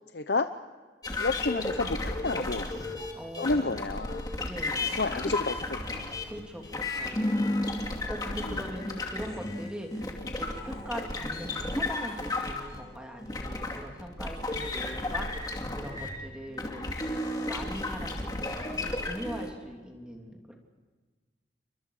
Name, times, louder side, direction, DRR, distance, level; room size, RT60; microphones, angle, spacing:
voice 1, 0.1-0.5 1.2-2.7 3.4-4.3 4.9-6.1 8.4-8.6 10.2-10.3 16.7-16.9, left 3 dB, 70° left, 9 dB, 0.8 m, -30 dB
sound 1, 1.0-16.2 16.6-19.5, left 2 dB, 20° left, 2.6 m, -33 dB
voice 2, 3.1-3.6 4.0-5.0 6.3-7.5 7.8-15.5 15.7-16.9 17.4-20.5, equal, 5° right, 1 dB, 3.2 m, -41 dB
29.0 x 24.0 x 4.9 m, 1.4 s
head